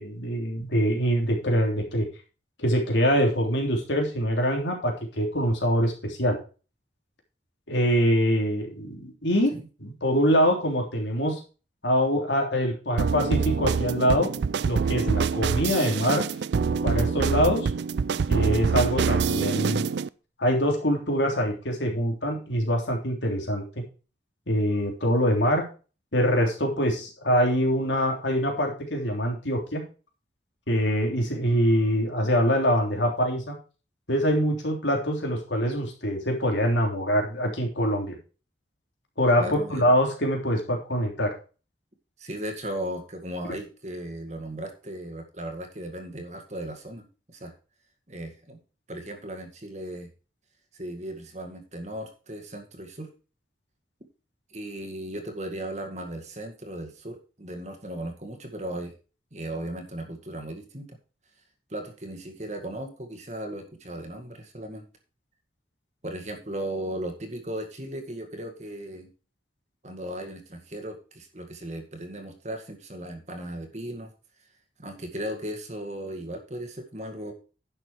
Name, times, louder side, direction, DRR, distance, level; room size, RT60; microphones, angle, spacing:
voice 1, 0.0-2.1 2.6-6.4 7.7-9.5 9.8-11.4 11.8-14.3 14.7-16.2 16.8-17.7 18.3-19.8 20.4-23.6 24.5-25.6 26.1-29.8 30.7-33.5 34.1-38.2 39.2-41.3 43.4-43.5, equal, 85° left, 1 dB, 3.4 m, -24 dB
sound 1, 13.0-20.1, right 5 dB, 70° right, 0.4 m, -25 dB
voice 2, 39.4-39.8 42.2-47.5 48.1-48.6 48.9-50.1 50.7-53.1 54.5-58.9 59.3-61.0 61.7-64.8 66.0-69.1 69.8-74.1 74.8-77.3, right 1 dB, 40° right, 5 dB, 1.9 m, -36 dB
11.0 x 6.7 x 4.8 m, 0.35 s
head